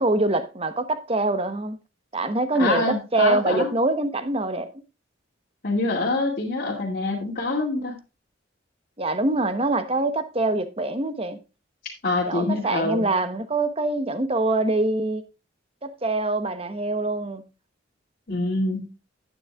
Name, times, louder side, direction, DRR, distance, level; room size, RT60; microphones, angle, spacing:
voice 1, 0.0-1.8 2.1-4.7 9.0-11.4 12.3-15.2 15.8-17.4, right 2 dB, 30° right, 1.0 m, -24 dB
voice 2, 2.5-3.7 5.6-8.0 12.0-13.0 18.3-18.9, left 2 dB, 45° left, 2.2 m, -25 dB
11.0 x 9.3 x 2.4 m
head